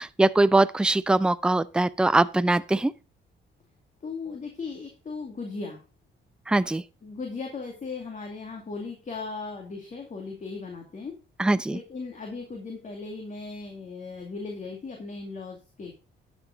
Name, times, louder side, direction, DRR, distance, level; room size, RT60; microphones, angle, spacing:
voice 1, 0.0-2.9 6.5-6.8 11.4-11.8, right 2 dB, 5° right, 0.4 m, -22 dB
voice 2, 4.0-5.8 7.0-11.2 11.7-16.0, left 4 dB, 40° left, 2.2 m, -37 dB
10.5 x 7.1 x 3.8 m
cardioid pair, 90°, 20 cm